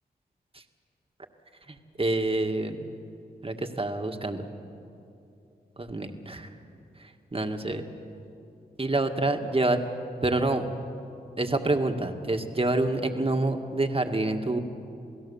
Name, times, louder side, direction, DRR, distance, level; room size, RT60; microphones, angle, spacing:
voice 1, 1.7-2.9 3.4-4.5 5.8-6.5 7.0-7.8 8.8-9.8 10.2-10.7 11.4-14.6, right 2 dB, 30° right, 5 dB, 1.9 m, -27 dB
28.5 x 17.0 x 7.2 m, 2.7 s
cardioid pair, 40°, 18 cm